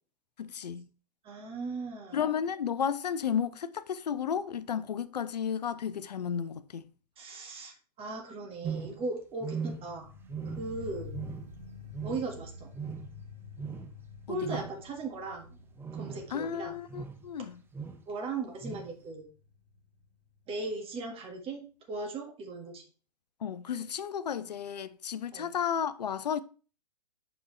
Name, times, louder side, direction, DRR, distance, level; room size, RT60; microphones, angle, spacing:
voice 1, 0.4-0.9 2.1-6.8 14.3-14.6 16.3-17.6 23.4-26.4, left 8 dB, 75° left, 0.5 m, -33 dB
voice 2, 1.2-2.2 7.2-10.1 10.6-11.1 12.0-12.7 14.3-15.6 15.9-16.8 18.1-19.3 20.5-22.8 25.3-25.5, right 3 dB, 25° right, 1.7 m, -38 dB
sound 1, 8.6-9.1 9.4-10.0 10.3-10.8 11.1-11.6 11.9-12.4 12.7-13.2 13.6-13.9 14.4-14.8 15.8-16.3 16.9-17.2 17.7-18.0 18.6-18.9, right 6 dB, 10° right, 0.6 m, -39 dB
sound 2, 9.7-20.7 21.0-21.1, left 4 dB, 85° right, 2.9 m, -49 dB
7.1 x 5.0 x 3.2 m
figure-of-eight pair, 110°, 21 cm